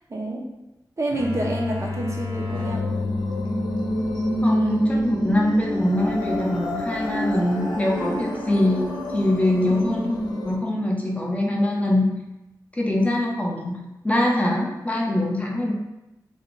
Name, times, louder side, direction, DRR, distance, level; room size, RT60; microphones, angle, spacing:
voice 1, 0.1-0.5 1.0-2.9 9.7-10.1, right 1 dB, 40° right, -1 dB, 0.4 m, -28 dB
sound 1, 1.1-6.6, left 4 dB, 90° right, 1.1 m, -33 dB
sound 2, 2.5-10.5, equal, 80° left, 0.5 m, -27 dB
voice 2, 4.4-10.2 10.4-12.1 12.7-15.7, left 1 dB, 20° left, -2 dB, 0.4 m, -23 dB
2.4 x 2.1 x 3.0 m, 0.95 s
wide cardioid pair, 105°, 7 cm